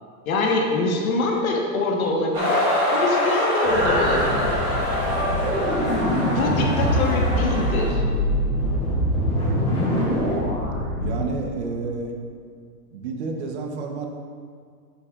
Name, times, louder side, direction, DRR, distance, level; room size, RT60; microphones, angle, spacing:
voice 1, 0.3-4.5 6.2-8.0, left 2 dB, 60° left, 0 dB, 1.4 m, -24 dB
sound 1, 2.3-7.9, equal, 15° right, 2.3 m, -25 dB
sound 2, 3.6-11.3, equal, 10° left, 2.1 m, -24 dB
voice 2, 11.0-12.1 12.9-14.1, right 4 dB, 45° right, 2 dB, 1.1 m, -30 dB
11.0 x 8.3 x 2.5 m, 2.1 s
supercardioid pair, 170°, 48 cm